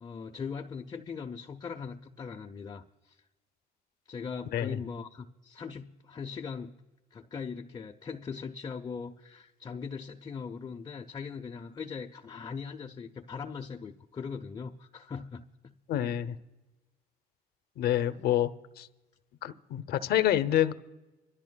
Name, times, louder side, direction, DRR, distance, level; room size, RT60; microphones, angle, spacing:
voice 1, 0.0-3.2 4.1-6.7 7.1-16.2, left 5 dB, 25° left, 0.6 m, -40 dB
voice 2, 15.9-16.4 17.8-18.5 18.8-18.9 19.4-20.7, left 11 dB, 70° left, 0.7 m, -27 dB
26.0 x 13.5 x 2.2 m
cardioid pair, 110°, 17 cm